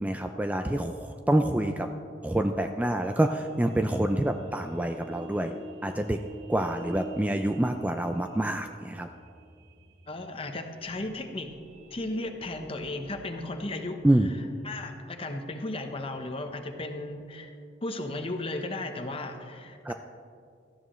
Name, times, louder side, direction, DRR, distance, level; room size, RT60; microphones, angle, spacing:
voice 1, 0.0-1.9 2.2-5.5 5.8-6.2 6.5-9.1 14.0-14.3 19.8-19.9, right 1 dB, 10° right, 6 dB, 0.3 m, -27 dB
sound 1, 2.9-17.1, right 1 dB, 45° right, 1.5 m, -48 dB
voice 2, 10.1-11.5 11.9-14.0 14.6-17.5 17.8-19.9, left 2 dB, 30° left, 6 dB, 0.9 m, -35 dB
17.5 x 13.0 x 3.1 m, 2.3 s
head